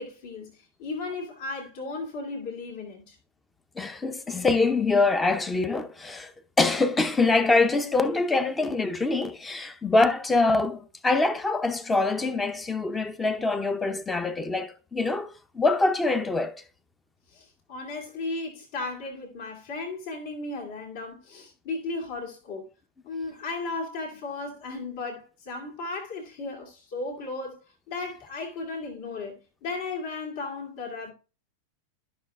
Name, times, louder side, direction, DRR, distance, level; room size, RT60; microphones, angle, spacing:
voice 1, 0.0-3.2 17.3-22.7 23.0-27.6 27.9-31.1, left 3 dB, 50° left, 2.3 m, -35 dB
voice 2, 3.8-6.3 6.6-16.6, left 3 dB, 10° left, 0.7 m, -24 dB
13.5 x 6.0 x 2.3 m
figure-of-eight pair, 90°, 0 cm